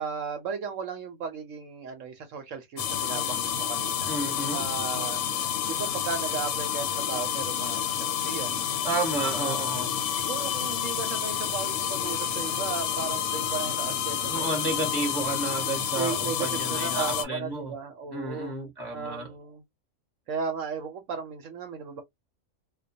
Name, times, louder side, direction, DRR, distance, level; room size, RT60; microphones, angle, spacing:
voice 1, 0.0-4.1 4.5-5.3 5.6-8.7 9.2-9.9 10.2-14.8 16.0-18.5 18.9-19.6 20.3-22.0, right 6 dB, 70° right, 0.9 m, -36 dB
sound 1, 2.8-17.2, left 9 dB, 70° left, 0.9 m, -29 dB
voice 2, 4.1-4.7 8.8-9.9 14.3-17.7 18.1-19.3, right 2 dB, 20° left, 0.8 m, -31 dB
2.3 x 2.2 x 2.5 m
omnidirectional pair, 1.5 m